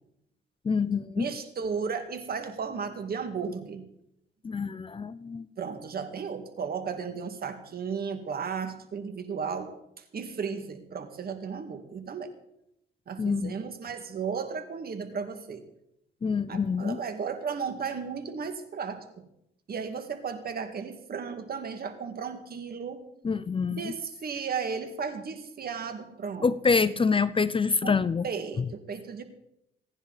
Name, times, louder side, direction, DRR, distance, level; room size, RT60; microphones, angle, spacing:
voice 1, 0.6-1.3 4.4-5.5 13.2-13.6 16.2-17.0 23.2-23.9 26.4-28.3 28.6-28.7, left 5 dB, 25° left, 16 dB, 0.5 m, -26 dB
voice 2, 1.2-3.8 5.6-12.3 13.1-15.6 16.5-19.2 19.7-23.0 23.8-26.8 27.8-28.0 28.2-29.2, right 6 dB, 50° right, 8 dB, 2.1 m, -35 dB
27.0 x 10.0 x 4.1 m, 0.79 s
cardioid pair, 90°, 20 cm